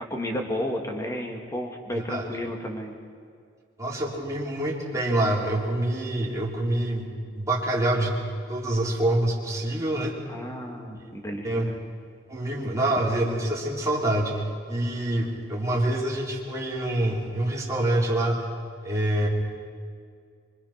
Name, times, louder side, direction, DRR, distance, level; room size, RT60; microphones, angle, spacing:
voice 1, 0.0-2.9 10.3-11.8, left 1 dB, 15° left, 1 dB, 2.5 m, -32 dB
voice 2, 1.9-2.3 3.8-8.2 8.5-10.1 11.4-11.7 12.3-14.4 14.7-18.4 18.8-19.3, right 1 dB, 15° right, -4 dB, 3.9 m, -26 dB
25.0 x 24.5 x 6.0 m, 2.1 s
head